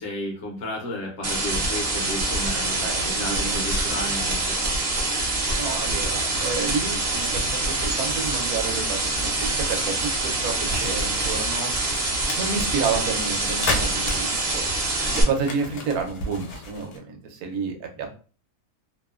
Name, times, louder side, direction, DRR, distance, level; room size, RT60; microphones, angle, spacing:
voice 1, 0.0-4.6, left 1 dB, 65° left, 0 dB, 0.8 m, -33 dB
sound 1, 1.2-15.2, right 2 dB, 55° right, 0.7 m, -25 dB
voice 2, 2.8-3.7 5.6-11.7 12.4-14.6 15.2-18.1, right 5 dB, 80° right, 4 dB, 1.1 m, -30 dB
sound 2, 5.4-17.0, left 2 dB, 85° left, 1.1 m, -36 dB
2.8 x 2.0 x 2.3 m, 0.38 s
omnidirectional pair, 1.6 m